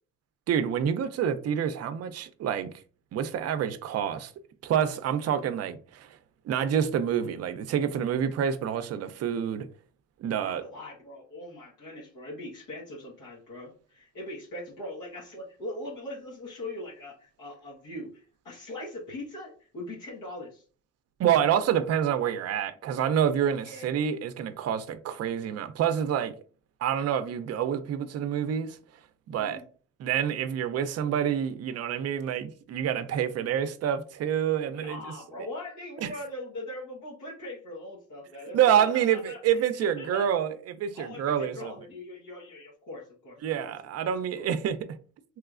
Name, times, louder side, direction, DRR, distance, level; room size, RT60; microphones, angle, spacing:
voice 1, 0.5-2.7 3.1-4.3 4.6-6.2 6.5-9.7 10.2-10.6 21.2-26.3 26.8-28.8 29.3-29.6 30.0-35.0 36.0-36.1 38.5-41.7 43.4-44.8, right 9 dB, 55° right, 0.5 m, -27 dB
voice 2, 10.4-20.6 23.6-23.9 29.4-29.6 34.7-40.3 40.9-43.4 43.6-43.7 44.0-44.1 44.4-44.6, left 1 dB, 85° left, 1.2 m, -41 dB
3.1 x 3.0 x 2.4 m
cardioid pair, 90°, 30 cm